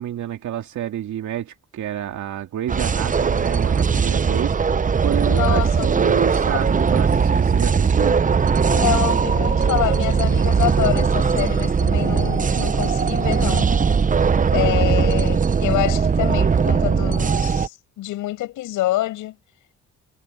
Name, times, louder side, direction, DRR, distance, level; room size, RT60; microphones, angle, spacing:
voice 1, 0.0-8.2, right 11 dB, 70° right, 2.5 m, -29 dB
sound 1, 2.7-17.7, right 6 dB, 25° right, 0.8 m, -19 dB
voice 2, 5.3-5.9 6.1-6.6 8.7-13.7 14.5-19.3, left 15 dB, 90° left, 5.7 m, -26 dB
cardioid pair, 90°, 30 cm